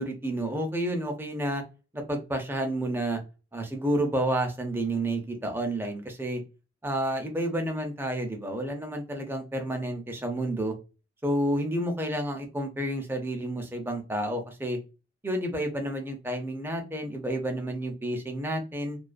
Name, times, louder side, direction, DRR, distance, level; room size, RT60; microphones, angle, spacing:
voice 1, 0.0-1.6 1.9-3.2 3.5-6.4 6.8-10.7 11.2-14.8 15.2-19.0, right 1 dB, 10° right, 4 dB, 0.5 m, -30 dB
2.4 x 2.2 x 2.4 m, 0.31 s
head